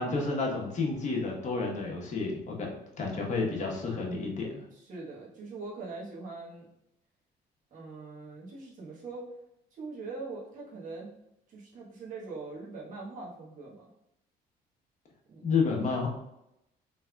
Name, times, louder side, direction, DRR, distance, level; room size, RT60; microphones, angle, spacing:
voice 1, 0.0-2.7 3.0-4.6 15.4-16.1, left 4 dB, 45° left, -1 dB, 1.0 m, -30 dB
voice 2, 4.9-6.7 7.7-9.3 9.8-11.2 11.5-13.9 15.3-15.4, right 3 dB, 50° right, -6 dB, 1.2 m, -42 dB
3.3 x 3.3 x 2.3 m, 0.83 s
cardioid pair, 110°, 17 cm